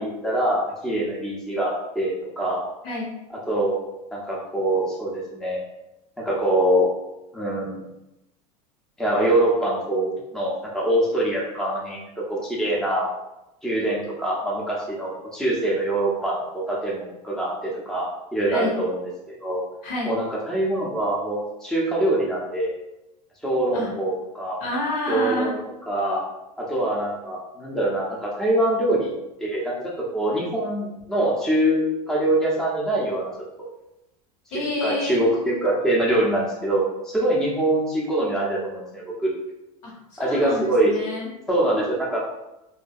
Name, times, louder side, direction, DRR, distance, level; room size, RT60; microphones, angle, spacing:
voice 1, 0.0-2.6 3.3-3.8 4.1-5.6 6.2-6.9 7.3-7.8 9.0-13.1 13.6-19.1 19.4-19.6 20.0-22.7 23.4-24.6 25.1-25.5 25.9-26.2 26.6-29.1 29.4-33.3 34.5-39.3 40.2-40.9 41.5-42.2, right 1 dB, ahead, -5 dB, 0.6 m, -24 dB
voice 2, 19.8-20.2 23.7-23.9 24.6-25.5 34.5-35.4 39.8-41.3, left 2 dB, 70° left, -4 dB, 1.2 m, -29 dB
2.4 x 2.1 x 2.6 m, 0.92 s
hypercardioid pair, 100°, 19 cm